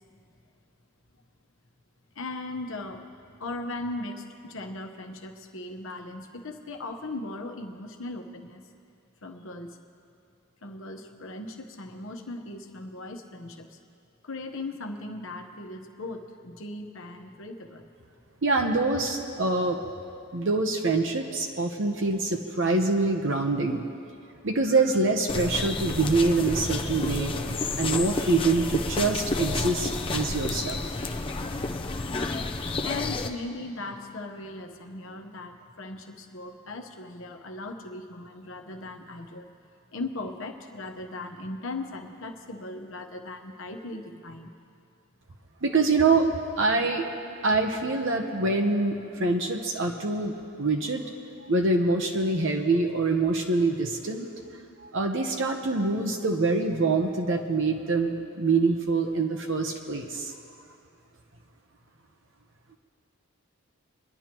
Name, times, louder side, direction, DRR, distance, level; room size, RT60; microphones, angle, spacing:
voice 1, 2.1-3.0 3.4-8.7 9.2-9.8 10.6-13.8 14.2-17.9 32.5-39.5 39.9-44.5, left 2 dB, 60° left, 5 dB, 1.0 m, -38 dB
voice 2, 18.4-19.8 20.3-23.8 24.4-27.3 27.8-30.8 45.6-47.1 47.4-51.0 51.5-54.3 54.8-60.3, right 3 dB, 60° right, 3 dB, 0.9 m, -25 dB
sound 1, 25.3-33.3, left 3 dB, 25° left, 0.5 m, -30 dB
24.0 x 11.0 x 3.0 m, 2.5 s
head